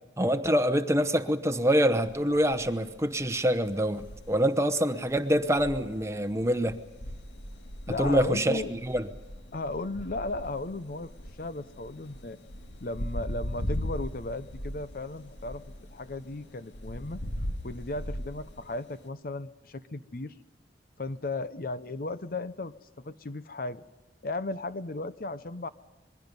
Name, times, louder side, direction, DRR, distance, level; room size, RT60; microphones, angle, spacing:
voice 1, 0.2-6.8 8.0-9.0, equal, 15° right, 9 dB, 0.9 m, -25 dB
sound 1, 2.0-19.1, equal, 75° left, 1.9 m, -40 dB
voice 2, 7.9-8.7 9.5-11.1 11.4-12.4 12.8-15.6 15.9-17.2 17.6-20.3 21.0-22.7 23.0-23.8 24.2-25.7, left 2 dB, 50° left, 13 dB, 0.7 m, -35 dB
26.5 x 21.5 x 5.4 m, 1.2 s
head